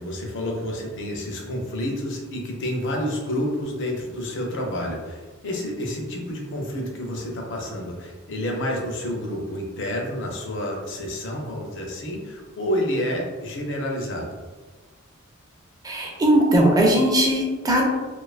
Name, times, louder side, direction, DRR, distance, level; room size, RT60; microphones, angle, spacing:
voice 1, 0.0-14.4, equal, 60° left, 0 dB, 0.5 m, -29 dB
voice 2, 15.8-17.8, right 1 dB, 15° right, -1 dB, 0.4 m, -19 dB
2.5 x 2.3 x 2.4 m, 1.3 s
head